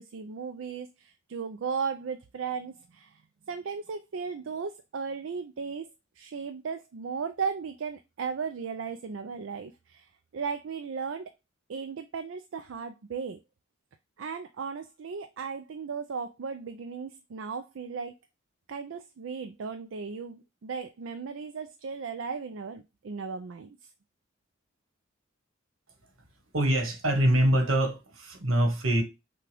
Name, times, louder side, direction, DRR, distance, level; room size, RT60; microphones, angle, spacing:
voice 1, 0.0-3.2 3.5-5.9 6.2-11.3 11.7-13.4 14.2-18.2 18.7-23.8, right 5 dB, 75° right, 0.4 m, -36 dB
voice 2, 26.5-29.0, right 1 dB, 90° right, 1.5 m, -24 dB
5.9 x 2.3 x 3.4 m
head